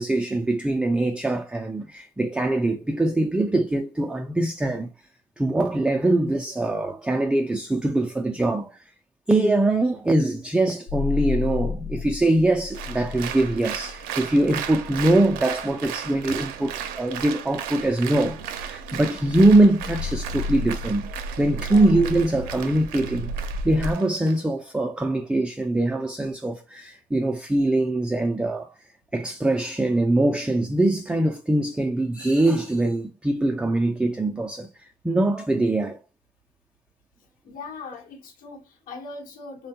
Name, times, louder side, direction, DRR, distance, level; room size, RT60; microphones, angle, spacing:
voice 1, 0.0-4.9 5.4-8.8 9.3-23.3 23.6-28.7 29.1-34.7 35.0-36.0, right 2 dB, 5° right, 0.4 m, -23 dB
sound 1, 10.9-23.9, left 3 dB, 75° left, 0.4 m, -33 dB
Applause, 12.7-24.4, right 10 dB, 70° right, 0.5 m, -36 dB
voice 2, 37.4-39.7, left 4 dB, 60° left, 1.0 m, -40 dB
3.3 x 2.2 x 2.7 m
supercardioid pair, 75°, 16 cm